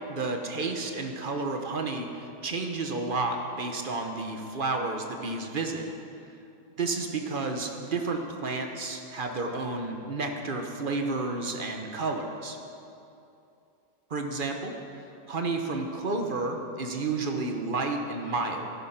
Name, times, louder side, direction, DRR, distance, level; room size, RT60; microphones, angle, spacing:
voice 1, 0.1-5.9 6.8-12.6 14.1-14.7 15.3-18.7, right 3 dB, 40° right, 3 dB, 0.8 m, -31 dB
14.0 x 11.5 x 5.8 m, 2.7 s
omnidirectional pair, 2.3 m